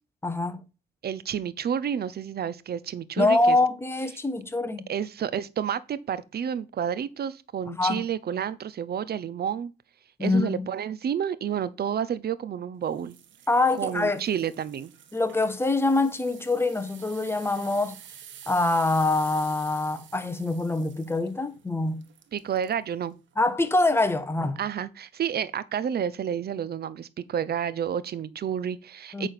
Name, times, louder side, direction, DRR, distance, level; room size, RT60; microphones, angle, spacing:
voice 1, 0.2-0.6 3.2-4.9 7.7-8.0 10.2-10.7 13.5-14.2 15.1-18.0 18.5-22.0 23.4-24.6 29.1-29.3, left 2 dB, 10° left, 1.4 m, -25 dB
voice 2, 1.0-3.6 4.9-9.7 10.2-13.2 13.7-14.9 22.3-23.1 24.6-29.3, right 8 dB, 55° right, 0.9 m, -30 dB
sound 1, 12.9-22.8 23.3-23.5 24.1-24.2, right 9 dB, 70° right, 1.5 m, -49 dB
9.0 x 3.8 x 6.8 m
cardioid pair, 90°, 20 cm